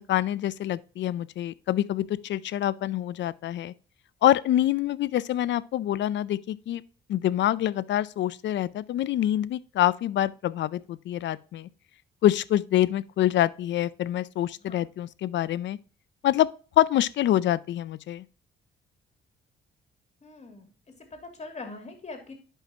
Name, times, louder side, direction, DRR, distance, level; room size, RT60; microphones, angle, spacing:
voice 1, 0.1-3.7 4.2-6.8 7.1-11.7 12.2-15.8 16.2-16.5 16.8-18.2, left 12 dB, 65° left, 0.5 m, -26 dB
voice 2, 20.2-20.7 21.1-22.3, left 3 dB, 35° left, 2.8 m, -42 dB
10.0 x 5.7 x 2.9 m
cardioid pair, 90°, 20 cm